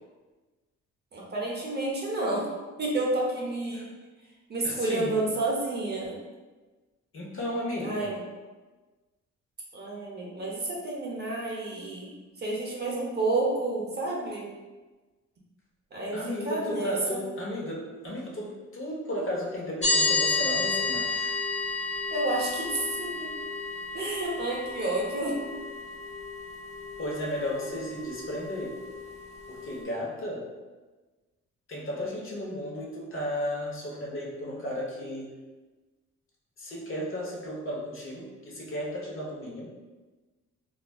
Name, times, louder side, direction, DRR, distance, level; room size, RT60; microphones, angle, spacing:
voice 1, 1.1-2.5 2.8-3.9 4.5-6.2 7.8-8.2 9.7-14.5 15.9-17.2 22.1-23.3 23.9-25.3, right 2 dB, 35° right, -3 dB, 0.7 m, -30 dB
voice 2, 4.6-5.3 7.1-8.1 16.1-21.3 27.0-28.8 29.5-30.5 31.7-35.3 36.6-39.7, left 1 dB, 45° left, -3 dB, 0.9 m, -34 dB
sound 1, 19.8-29.8, left 3 dB, 20° left, 0.5 m, -31 dB
3.2 x 2.4 x 2.3 m, 1.2 s
cardioid pair, 90°, 30 cm